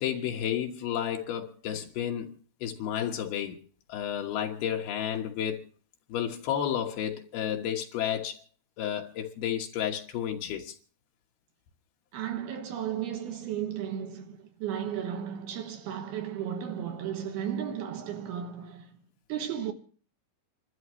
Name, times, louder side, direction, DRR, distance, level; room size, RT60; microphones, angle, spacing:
voice 1, 0.0-3.6 3.9-5.7 6.1-8.4 8.8-10.8, left 9 dB, 70° left, 3.1 m, -32 dB
voice 2, 12.1-19.0 19.3-19.7, right 9 dB, 75° right, 3.2 m, -34 dB
28.0 x 13.0 x 3.1 m
omnidirectional pair, 4.9 m